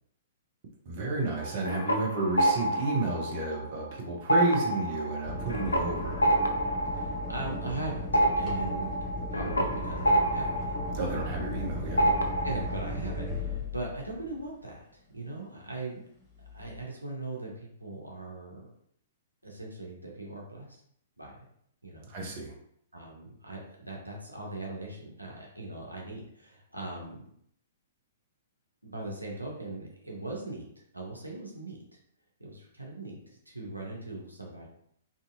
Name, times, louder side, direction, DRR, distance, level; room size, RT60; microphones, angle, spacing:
voice 1, 0.9-6.3 10.9-12.1 22.1-22.5, right 2 dB, 40° right, -1 dB, 0.7 m, -31 dB
sound 1, 1.4-3.9 4.2-11.7 12.0-12.8, right 1 dB, 75° left, 0.4 m, -28 dB
sound 2, 5.2-14.4 16.4-16.8, left 1 dB, 20° left, 0.7 m, -36 dB
voice 2, 6.9-11.1 12.4-16.0 16.5-18.7 19.4-20.7 21.2-21.5 21.8-22.1 22.9-27.2 28.8-30.7 30.9-32.0 32.4-34.7, right 2 dB, 90° right, -2 dB, 0.7 m, -40 dB
2.7 x 2.6 x 2.5 m, 0.69 s
figure-of-eight pair, 115°, 0 cm